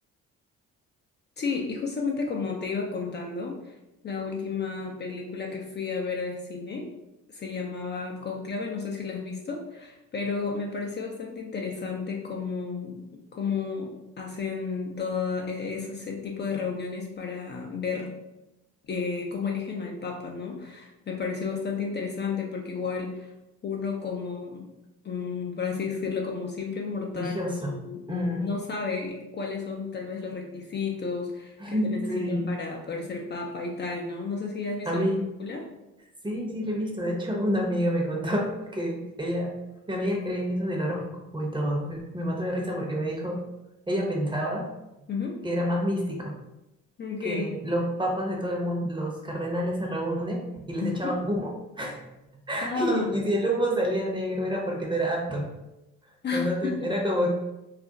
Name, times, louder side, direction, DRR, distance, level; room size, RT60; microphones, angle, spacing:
voice 1, 1.4-3.7 4.0-6.9 7.3-13.0 13.3-18.1 18.9-23.3 23.6-24.7 25.0-35.0 35.4-35.6 45.1-45.4 47.0-47.5 50.8-51.2 52.6-53.1 56.2-56.9, left 5 dB, 35° left, 0 dB, 0.4 m, -32 dB
voice 2, 27.1-27.7 28.1-28.5 31.6-32.5 34.9-35.2 36.2-39.5 39.9-43.4 43.9-44.7 45.4-46.3 47.2-51.5 51.8-52.0 52.5-55.5 56.3-57.3, equal, 15° right, -1 dB, 0.8 m, -28 dB
2.4 x 2.1 x 3.9 m, 0.95 s
cardioid pair, 90°, 30 cm